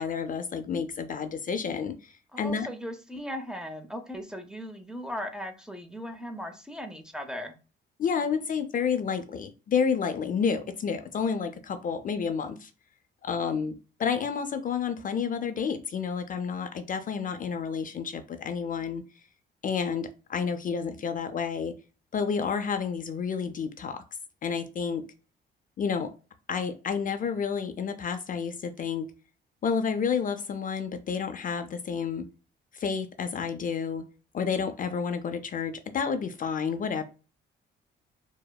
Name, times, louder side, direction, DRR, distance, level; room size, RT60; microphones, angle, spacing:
voice 1, 0.0-2.7 8.0-12.7 13.2-19.0 19.6-21.8 22.1-24.0 24.4-25.1 25.8-26.1 26.5-29.1 29.6-32.3 32.7-34.1 34.3-37.0, left 6 dB, 45° left, 0.4 m, -30 dB
voice 2, 2.3-7.5, equal, 5° right, 0.6 m, -38 dB
4.7 x 2.0 x 2.2 m
cardioid pair, 90°, 20 cm